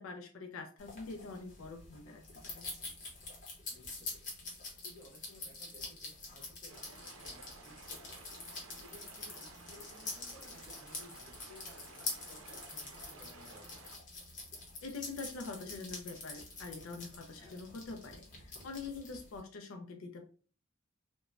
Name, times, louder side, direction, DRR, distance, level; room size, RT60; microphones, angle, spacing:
voice 1, 0.0-2.7 14.8-20.3, left 3 dB, 70° left, 5 dB, 0.4 m, -45 dB
sound 1, 0.8-19.4, left 3 dB, 40° left, 0.9 m, -46 dB
voice 2, 3.7-4.3 4.8-8.4 8.8-13.8 17.4-17.7, left 1 dB, 10° left, -4 dB, 1.2 m, -58 dB
sound 2, 6.7-14.0, right 3 dB, 85° right, 0.5 m, -54 dB
3.0 x 2.1 x 2.4 m, 0.38 s
head